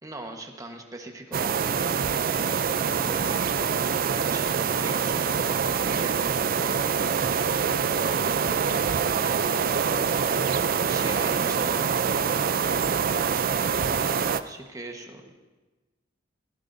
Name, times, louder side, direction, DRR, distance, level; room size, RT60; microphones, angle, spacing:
voice 1, 0.0-1.6 3.0-3.5 4.2-6.4 10.9-11.9 14.4-15.3, right 2 dB, 20° right, 3 dB, 1.3 m, -40 dB
sound 1, 1.3-14.4, right 6 dB, 50° right, 0.5 m, -25 dB
voice 2, 2.7-2.8, equal, 60° left, -2 dB, 4.3 m, -46 dB
20.5 x 16.5 x 2.7 m, 1.2 s
head